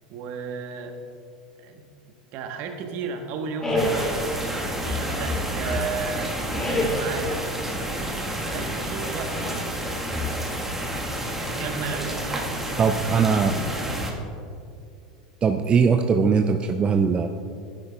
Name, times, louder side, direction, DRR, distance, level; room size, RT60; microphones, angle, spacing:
voice 1, 0.1-1.0 1.6-1.8 2.3-4.2 4.8-6.3 6.6-7.4 8.1-9.4 11.5-13.5 13.8-14.0, right 5 dB, 55° right, 5 dB, 1.1 m, -34 dB
sound 1, 3.6-4.3 4.8-6.0 6.5-7.3 9.2-9.7 10.1-10.8, left 1 dB, 15° left, 2.3 m, -28 dB
sound 2, 3.8-14.1, right 1 dB, 10° right, 1.3 m, -30 dB
voice 2, 12.8-13.5 15.4-17.3, right 5 dB, 30° right, 5 dB, 0.4 m, -20 dB
11.5 x 9.7 x 2.3 m, 2.4 s
hypercardioid pair, 85°, 4 cm